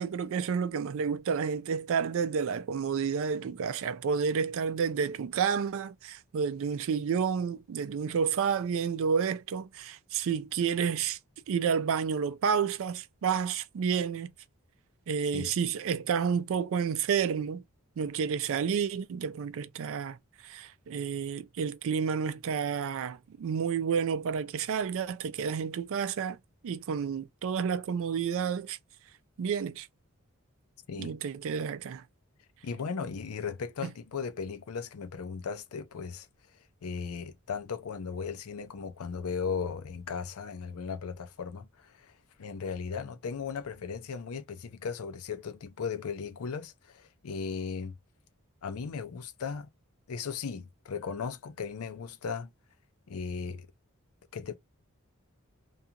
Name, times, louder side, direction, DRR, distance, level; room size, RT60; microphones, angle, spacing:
voice 1, 0.0-11.2 11.5-14.3 15.1-17.6 18.0-20.2 20.4-26.4 26.6-28.8 29.4-29.9 31.0-32.0 33.8-33.9, right 6 dB, 65° right, 0.3 m, -30 dB
voice 2, 32.6-36.3 36.8-42.1 42.4-48.0 48.6-49.7 50.1-52.5 53.1-53.7 54.3-54.6, left 5 dB, 75° left, 0.5 m, -37 dB
2.3 x 2.3 x 2.7 m
head